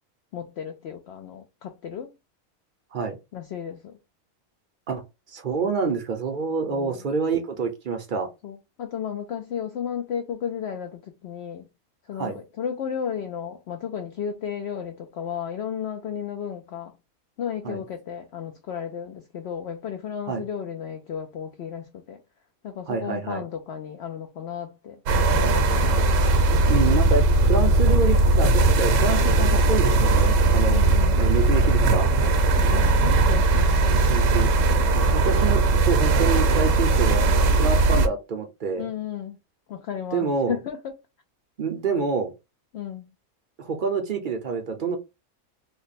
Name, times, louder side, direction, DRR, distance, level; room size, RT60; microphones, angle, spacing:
voice 1, 0.3-2.1 3.3-4.0 6.7-7.0 8.4-11.7 12.1-16.9 17.4-22.2 22.6-25.9 30.7-31.3 32.5-34.0 38.8-39.4 39.7-41.0 42.7-43.1, left 8 dB, 65° left, 0.7 m, -34 dB
voice 2, 5.3-8.3 12.2-12.4 17.6-17.8 20.3-20.4 22.9-23.4 26.7-30.8 31.2-32.1 33.9-34.5 35.1-37.3 37.5-38.9 40.1-40.6 41.6-42.3 43.6-45.0, right 5 dB, 50° right, 0.6 m, -27 dB
sound 1, 25.1-38.1, right 2 dB, 70° right, 1.0 m, -19 dB
3.2 x 2.1 x 4.0 m
omnidirectional pair, 1.5 m